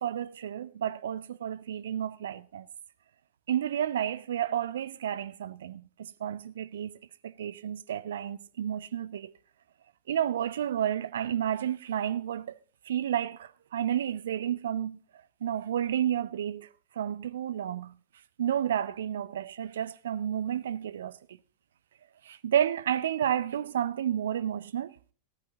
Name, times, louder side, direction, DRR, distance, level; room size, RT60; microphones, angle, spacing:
voice 1, 0.0-2.7 3.5-7.0 7.2-9.3 10.1-12.6 12.9-15.0 15.4-16.7 17.0-18.0 18.4-21.4 22.2-24.9, right 10 dB, 60° right, 0.5 m, -31 dB
14.5 x 13.5 x 2.7 m
figure-of-eight pair, 90°, 0 cm